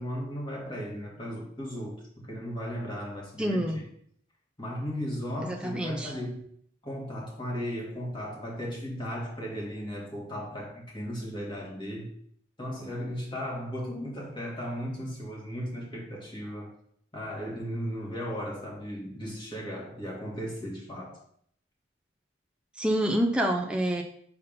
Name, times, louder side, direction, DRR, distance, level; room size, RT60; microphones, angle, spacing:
voice 1, 0.0-3.8 4.6-6.5 6.8-12.1 12.6-16.7 17.1-21.2, equal, 25° left, -4 dB, 2.1 m, -36 dB
voice 2, 3.4-3.8 5.5-6.1 22.8-24.0, right 1 dB, 5° right, 0 dB, 0.5 m, -27 dB
5.7 x 4.2 x 5.2 m, 0.65 s
head